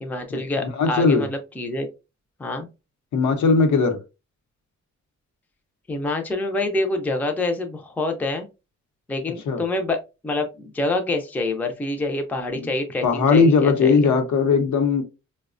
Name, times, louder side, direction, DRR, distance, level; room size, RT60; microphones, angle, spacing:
voice 1, 0.0-1.9 2.4-2.7 5.9-8.5 9.1-14.1, left 2 dB, 5° left, 0.4 m, -26 dB
voice 2, 0.7-1.3 3.1-4.0 9.5-9.6 12.5-12.7 13.0-15.0, left 5 dB, 80° left, 0.8 m, -18 dB
4.7 x 2.1 x 2.4 m
wide cardioid pair, 170°, 29 cm